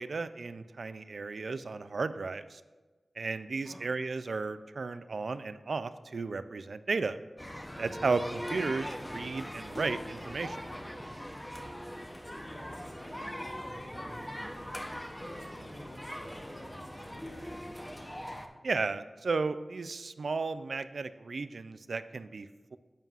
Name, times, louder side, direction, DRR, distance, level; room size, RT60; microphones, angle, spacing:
voice 1, 0.0-2.6 3.2-7.2 7.8-10.7 18.6-22.8, right 4 dB, 80° right, 12 dB, 0.3 m, -34 dB
sound 1, 7.4-18.5, equal, 10° left, 0.7 m, -41 dB
voice 2, 12.2-14.7 15.1-17.7, equal, 60° left, -4 dB, 2.8 m, -51 dB
11.0 x 7.4 x 2.4 m, 1.2 s
wide cardioid pair, 75°, 0 cm